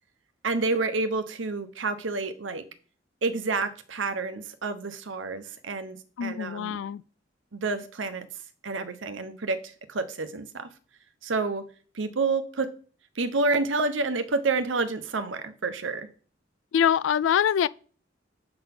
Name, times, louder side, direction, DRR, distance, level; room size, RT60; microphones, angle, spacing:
voice 1, 0.4-2.6 3.2-6.8 7.5-8.3 8.6-9.6 9.9-10.7 11.2-11.6 11.9-12.7 13.2-16.1, right 3 dB, 75° right, 0.9 m, -29 dB
voice 2, 6.2-7.0 16.7-17.7, left 8 dB, 75° left, 0.3 m, -24 dB
7.7 x 3.9 x 5.9 m
head